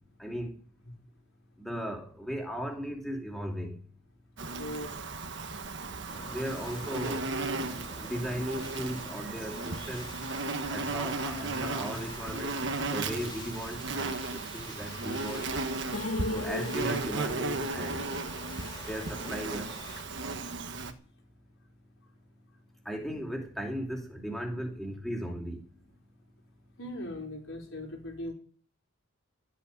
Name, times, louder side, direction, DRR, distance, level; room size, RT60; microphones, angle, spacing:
voice 1, 0.2-0.5 1.6-3.8 6.3-7.2 8.0-10.1 10.7-12.6 12.8-15.5 16.3-18.1 18.9-19.7 22.8-25.6, equal, ahead, 2.7 m, -37 dB
Insect, 4.4-20.9, right 3 dB, 55° right, 1.4 m, -35 dB
voice 2, 4.5-5.0 26.8-28.3, left 1 dB, 60° left, 5.1 m, -39 dB
sound 1, 6.1-20.0, left 2 dB, 20° left, 2.5 m, -47 dB
sound 2, 15.9-20.1 20.3-20.4 20.8-20.9, left 2 dB, 75° left, 2.3 m, -38 dB
13.0 x 8.5 x 9.3 m
head